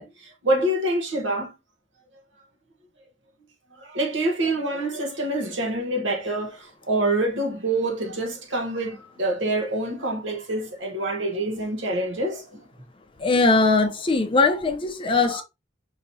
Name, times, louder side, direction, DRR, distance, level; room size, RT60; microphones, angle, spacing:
voice 1, 0.0-1.5 3.8-12.6 15.2-15.4, right 1 dB, 65° right, 1.1 m, -26 dB
voice 2, 13.2-15.4, left 3 dB, 25° left, 0.6 m, -20 dB
5.0 x 2.8 x 2.7 m
head